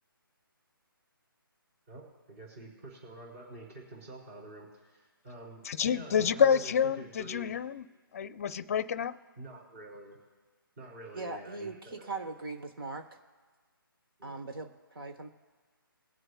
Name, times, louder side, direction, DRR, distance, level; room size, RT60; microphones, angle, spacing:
voice 1, 1.9-7.5 9.4-10.2 10.8-12.1 14.2-14.4, right 2 dB, 35° right, -2 dB, 3.6 m, -47 dB
voice 2, 5.6-7.9 8.1-9.2, left 7 dB, 40° left, 14 dB, 0.5 m, -28 dB
voice 3, 11.1-13.1 14.2-15.3, right 3 dB, 70° right, 4 dB, 1.2 m, -40 dB
22.0 x 7.7 x 2.3 m, 1.4 s
figure-of-eight pair, 150°, 12 cm